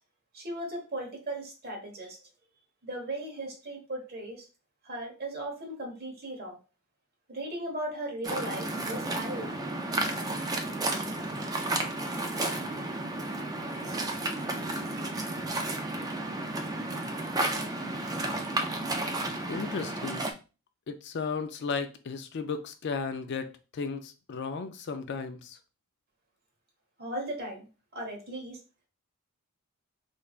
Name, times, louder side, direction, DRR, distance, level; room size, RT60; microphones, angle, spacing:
voice 1, 0.3-2.2 2.8-4.5 4.8-6.6 7.3-9.9 27.0-27.7 27.9-28.6, right 1 dB, 45° right, 1.2 m, -37 dB
Waves surf, 8.2-20.3, right 2 dB, 15° right, 0.3 m, -32 dB
voice 2, 19.5-20.3 20.9-23.5 23.7-25.6, left 5 dB, 50° left, 0.4 m, -34 dB
3.4 x 3.1 x 2.4 m
head